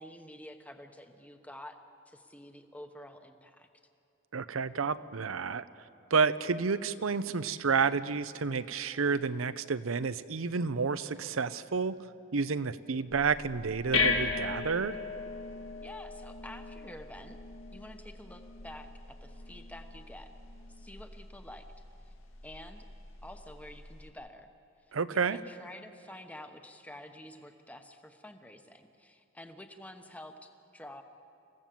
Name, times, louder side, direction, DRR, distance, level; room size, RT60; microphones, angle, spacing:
voice 1, 0.0-1.8 2.1-3.7 15.8-17.4 17.7-20.3 20.7-21.6 22.0-22.1 22.4-22.8 23.2-24.5 25.1-31.0, left 1 dB, 5° left, 6 dB, 1.0 m, -49 dB
voice 2, 4.3-5.6 6.1-12.0 12.3-15.0 24.9-25.4, right 5 dB, 90° right, 14 dB, 0.7 m, -30 dB
sound 1, 13.1-24.1, left 4 dB, 80° left, 1.9 m, -37 dB
27.0 x 16.0 x 7.6 m, 2.7 s
head